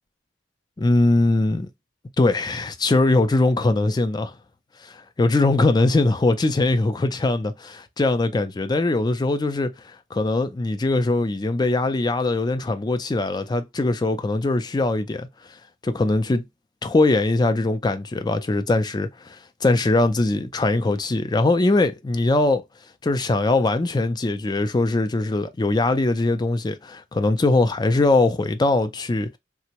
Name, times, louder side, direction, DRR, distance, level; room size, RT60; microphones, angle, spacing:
voice 1, 0.8-1.7 2.2-4.3 4.8-15.3 15.8-16.4 16.8-22.6 23.0-29.4, left 2 dB, 20° left, 0.4 m, -21 dB
3.4 x 2.0 x 2.9 m
head